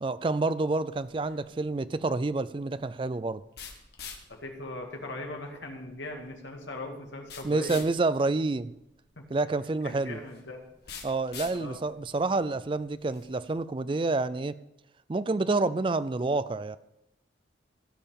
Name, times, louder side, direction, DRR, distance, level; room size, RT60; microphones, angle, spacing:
voice 1, 0.0-3.4 7.4-8.7 9.3-10.2 11.0-14.6 15.1-16.8, right 3 dB, 25° right, 0.3 m, -28 dB
sound 1, 0.9-13.5, left 6 dB, 55° left, 1.8 m, -48 dB
voice 2, 4.3-7.8 9.2-9.3 9.8-10.6 11.6-11.8, left 2 dB, 75° left, 2.1 m, -39 dB
16.0 x 5.7 x 7.0 m
head